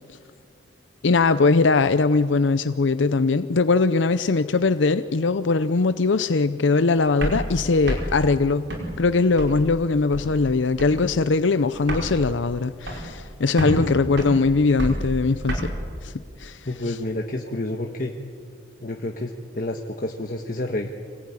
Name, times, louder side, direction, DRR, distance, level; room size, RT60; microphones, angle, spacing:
voice 1, 1.0-8.7 9.0-15.7 16.0-16.1 16.4-16.9, left 3 dB, 85° left, 0.6 m, -21 dB
sound 1, 7.2-9.8 10.1-10.5 10.8-11.2 11.4-11.5 11.7-13.3 13.6-15.6, right 1 dB, 75° right, 5.4 m, -29 dB
voice 2, 16.6-18.1 18.8-20.9, left 1 dB, 45° left, 1.4 m, -29 dB
26.0 x 20.0 x 9.8 m
head